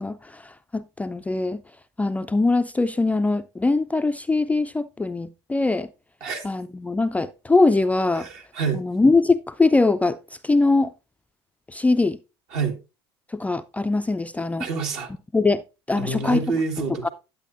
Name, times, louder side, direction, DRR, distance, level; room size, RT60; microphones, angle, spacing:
voice 1, 0.0-1.6 2.0-5.9 6.4-8.3 8.7-10.2 10.4-10.9 11.7-12.2 13.3-14.7 15.3-16.4 17.0-17.1, left 3 dB, 10° left, 0.3 m, -22 dB
voice 2, 8.2-8.8 12.5-12.8 14.6-15.1 16.0-17.1, right 4 dB, 65° right, 1.7 m, -27 dB
10.0 x 8.2 x 2.5 m
hypercardioid pair, 75°, 14 cm